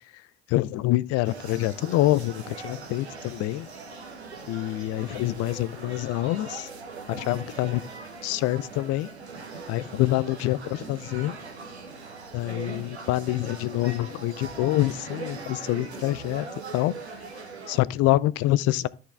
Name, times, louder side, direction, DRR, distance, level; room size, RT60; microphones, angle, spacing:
voice 1, 0.5-3.7 4.5-6.7 7.1-7.8 8.2-9.1 9.7-11.4 12.3-16.5 16.7-16.9 17.7-18.9, left 16 dB, 50° left, 0.5 m, -26 dB
sound 1, 1.2-17.8, right 4 dB, 90° right, 1.1 m, -41 dB
13.0 x 4.6 x 3.3 m
figure-of-eight pair, 60°, 32 cm